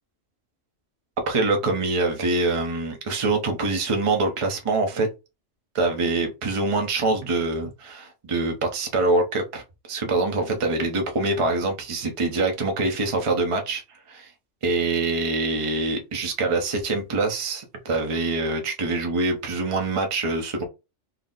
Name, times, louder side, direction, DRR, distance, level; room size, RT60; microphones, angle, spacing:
voice 1, 1.3-5.1 5.7-9.6 9.9-13.8 14.1-14.3 14.6-20.6, right 3 dB, 30° right, 0.6 m, -24 dB
4.2 x 2.0 x 3.8 m
omnidirectional pair, 1.4 m